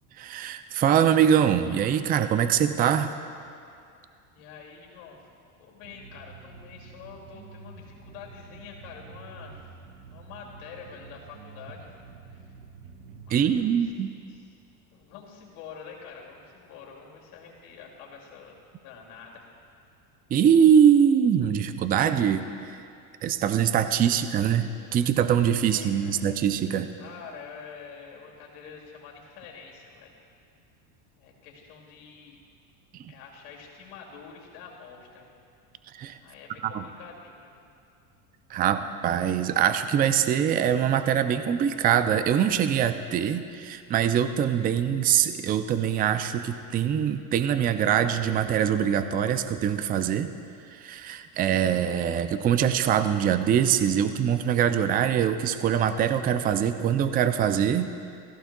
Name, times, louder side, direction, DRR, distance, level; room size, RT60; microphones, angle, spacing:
voice 1, 0.2-3.1 13.3-14.1 20.3-22.4 23.2-26.9 35.9-36.2 36.7-36.8 38.5-50.3 50.7-57.9, right 9 dB, 20° right, 10 dB, 0.3 m, -23 dB
voice 2, 4.3-5.2 5.6-9.6 10.1-11.9 12.3-12.5 13.3-13.9 14.3-14.5 14.9-18.6 18.8-19.4 23.8-24.4 25.6-26.3 27.0-30.1 31.2-32.4 33.1-35.3 36.2-37.5, left 6 dB, 75° left, -2 dB, 2.6 m, -46 dB
sound 1, 5.8-13.8, right 4 dB, 75° right, 1.3 m, -48 dB
16.0 x 14.5 x 2.3 m, 2.4 s
supercardioid pair, 110°, 45 cm